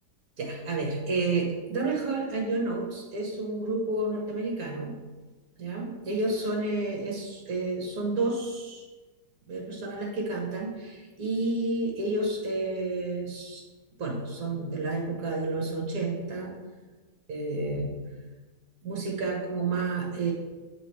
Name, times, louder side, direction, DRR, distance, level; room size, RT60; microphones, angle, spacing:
voice 1, 0.4-5.0 5.6-8.8 9.5-13.6 14.0-16.6 17.3-18.0 18.8-20.3, right 2 dB, 60° right, -1 dB, 1.8 m, -30 dB
8.3 x 5.0 x 3.2 m, 1.3 s
omnidirectional pair, 1.8 m